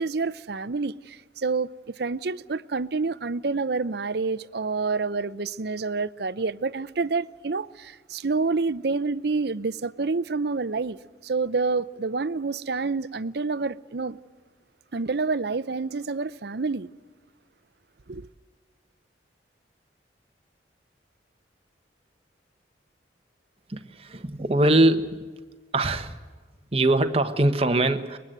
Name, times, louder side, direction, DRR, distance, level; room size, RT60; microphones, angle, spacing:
voice 1, 0.0-1.7 2.0-11.0 11.2-14.2 14.9-16.9 18.1-18.3, right 4 dB, 60° right, 0.7 m, -28 dB
voice 2, 23.7-25.2 25.7-26.2 26.7-28.2, right 1 dB, 30° right, 1.2 m, -22 dB
23.5 x 20.5 x 7.9 m
head